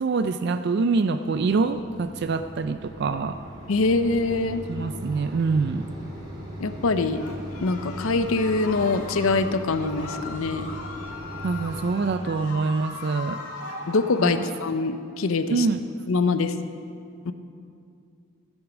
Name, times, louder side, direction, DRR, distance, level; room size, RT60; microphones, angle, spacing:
voice 1, 0.0-3.4 4.7-5.9 11.4-13.4 14.2-14.5 15.5-15.8, right 4 dB, 50° right, 10 dB, 0.3 m, -25 dB
Mechanisms, 1.3-12.2, equal, 20° right, 2.5 m, -39 dB
voice 2, 3.7-4.6 6.6-7.2 7.6-10.7 13.9-15.7 16.1-16.5 17.3-17.4, left 3 dB, 70° left, 10 dB, 0.6 m, -24 dB
sound 1, 7.1-14.5, left 3 dB, 85° left, 1.7 m, -39 dB
14.5 x 8.0 x 6.2 m, 2.4 s
head